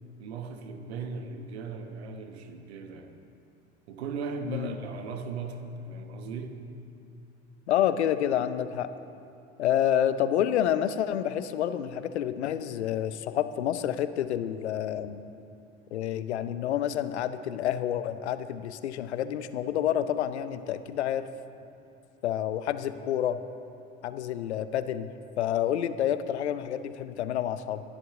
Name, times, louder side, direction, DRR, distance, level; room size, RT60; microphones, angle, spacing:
voice 1, 0.2-3.2 3.9-6.6, right 4 dB, 70° right, 6 dB, 1.3 m, -37 dB
voice 2, 7.7-8.9 9.6-15.2 15.9-21.2 22.2-23.4 24.0-25.1 25.4-27.8, left 10 dB, 75° left, 12 dB, 0.8 m, -28 dB
22.0 x 10.5 x 3.8 m, 2.6 s
figure-of-eight pair, 70°, 34 cm